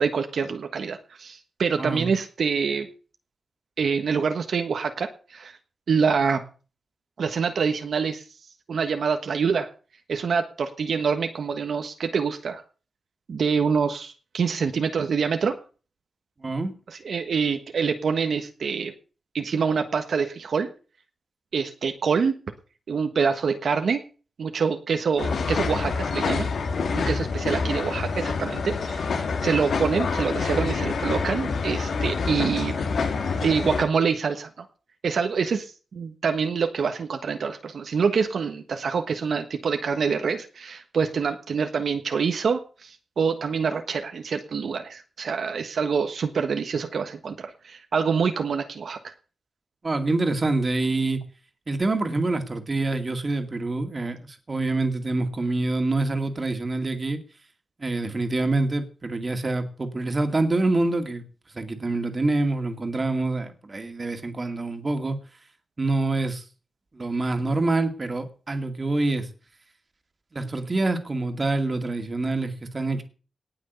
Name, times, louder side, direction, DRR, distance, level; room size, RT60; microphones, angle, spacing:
voice 1, 0.0-2.9 3.8-5.6 5.9-6.4 7.2-8.2 8.7-9.7 10.1-12.6 13.3-15.5 16.9-18.9 19.3-20.7 21.5-22.3 22.9-24.0 24.4-26.5 26.9-29.1 29.4-32.7 33.4-34.6 35.0-49.0, right 5 dB, 70° right, 1.4 m, -26 dB
voice 2, 16.4-16.7 49.8-51.2 51.7-57.2 57.8-61.2 61.5-65.2 65.8-66.4 66.9-69.3 70.3-73.0, right 2 dB, 30° right, 2.3 m, -26 dB
sound 1, 25.2-33.9, left 4 dB, 75° left, 2.6 m, -27 dB
18.5 x 6.3 x 8.2 m
wide cardioid pair, 145°, 0 cm